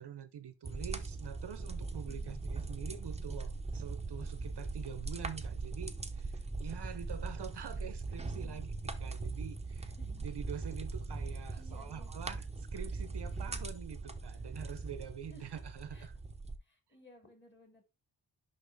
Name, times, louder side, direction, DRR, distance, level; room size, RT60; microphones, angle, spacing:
voice 1, 0.0-12.5 12.7-16.1, right 8 dB, 60° right, 0.7 m, -46 dB
sound 1, 0.6-16.6, right 3 dB, 15° right, 0.7 m, -40 dB
voice 2, 1.9-2.4 8.2-8.6 10.0-10.3 11.3-12.1 15.3-15.4 15.9-16.1 16.6-17.8, left 1 dB, 25° left, 2.3 m, -59 dB
6.5 x 5.5 x 3.4 m
wide cardioid pair, 170°, 45 cm